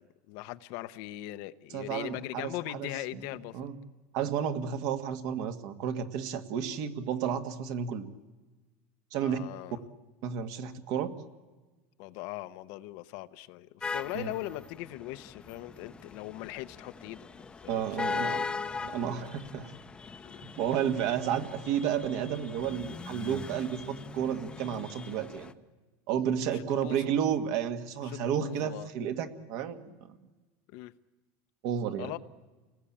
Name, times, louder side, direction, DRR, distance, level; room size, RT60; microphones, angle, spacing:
voice 1, 0.0-3.7 9.2-9.8 12.0-17.3 17.6-17.8 18.2-18.4 20.2-20.4 26.5-27.1 28.1-28.9 30.7-30.9 32.0-32.2, left 16 dB, 60° left, 13 dB, 0.8 m, -40 dB
voice 2, 1.7-2.9 3.1-3.2 3.5-3.7 4.1-8.1 9.1-9.4 10.2-11.1 14.1-14.3 17.7-18.5 18.8-19.7 20.6-25.5 26.1-30.2 31.6-32.1, right 8 dB, 55° right, 8 dB, 1.7 m, -32 dB
sound 1, 13.8-25.5, left 4 dB, 15° left, 0.8 m, -40 dB
29.0 x 19.5 x 8.7 m, 1.3 s
supercardioid pair, 155°, 7 cm